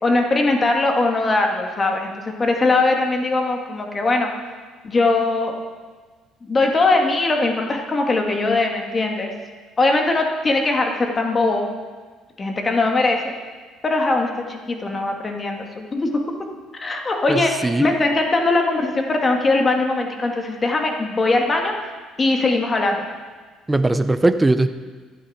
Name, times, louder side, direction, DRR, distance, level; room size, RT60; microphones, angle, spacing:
voice 1, 0.0-2.1 2.4-4.3 4.8-5.5 6.4-9.3 9.8-11.7 12.4-13.2 13.8-16.1 16.8-17.5 17.8-21.9 22.2-23.1, left 2 dB, 25° left, 2 dB, 1.7 m, -20 dB
voice 2, 17.3-17.9 23.7-24.7, right 2 dB, 10° right, 10 dB, 0.5 m, -19 dB
13.0 x 11.5 x 4.2 m, 1.4 s
cardioid pair, 115°, 0 cm